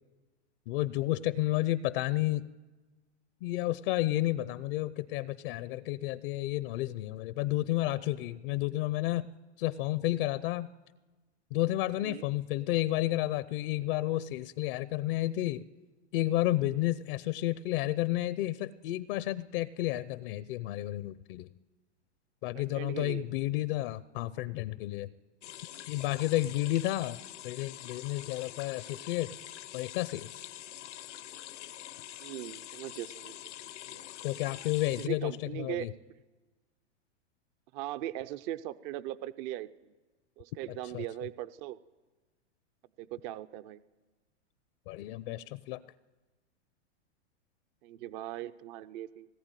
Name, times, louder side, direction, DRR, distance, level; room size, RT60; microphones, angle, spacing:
voice 1, 0.7-2.5 3.4-9.3 9.6-10.7 11.5-15.6 16.1-21.5 22.4-25.1 25.9-27.2 27.4-29.3 29.7-30.5 34.2-35.9 40.9-41.0 44.9-45.8, left 16 dB, 50° left, 16 dB, 0.7 m, -31 dB
voice 2, 22.5-23.3 28.7-29.0 32.2-33.4 33.6-34.1 35.0-36.2 37.7-39.9 40.4-41.8 43.0-43.8 47.8-49.4, right 13 dB, 45° right, 15 dB, 0.7 m, -40 dB
sound 1, 25.4-35.1, left 13 dB, 80° left, 1.0 m, -45 dB
20.0 x 18.5 x 9.1 m, 1.3 s
hypercardioid pair, 130°, 35 cm